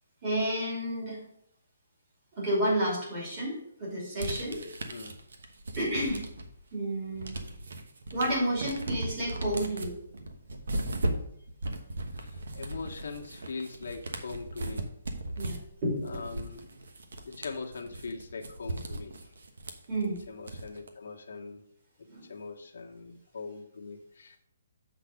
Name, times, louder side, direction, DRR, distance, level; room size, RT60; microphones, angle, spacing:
voice 1, 0.2-1.2 2.4-4.6 5.8-6.2 6.7-7.3 8.1-10.0 15.4-16.3 19.9-20.2 22.1-22.2, right 1 dB, 20° right, -6 dB, 2.7 m, -31 dB
sound 1, 4.2-6.6 6.9-20.9, right 1 dB, 80° right, 1.1 m, -37 dB
voice 2, 12.2-14.9 16.0-16.6 17.2-19.1 20.3-21.6 22.3-24.4, left 4 dB, 70° left, 2 dB, 1.1 m, -41 dB
7.0 x 4.0 x 6.4 m, 0.72 s
hypercardioid pair, 175°, 0 cm